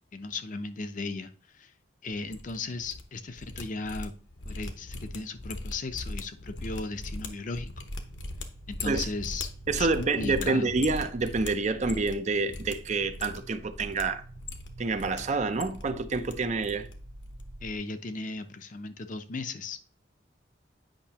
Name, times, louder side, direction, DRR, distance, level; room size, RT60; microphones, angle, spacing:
voice 1, 0.1-1.7 2.0-4.1 4.5-7.9 8.7-10.7 17.6-19.8, left 3 dB, 45° left, 0.6 m, -36 dB
sound 1, 2.1-3.0 3.3-12.2 12.5-12.7 13.1-14.0 14.4-15.2 15.5-16.3 16.6-16.9 17.2-17.4, left 2 dB, 80° left, 1.0 m, -40 dB
sound 2, 7.6-17.8, right 1 dB, 85° right, 1.1 m, -48 dB
voice 2, 9.7-14.2 14.8-16.9, right 3 dB, 40° right, 0.5 m, -28 dB
8.8 x 5.5 x 2.9 m
head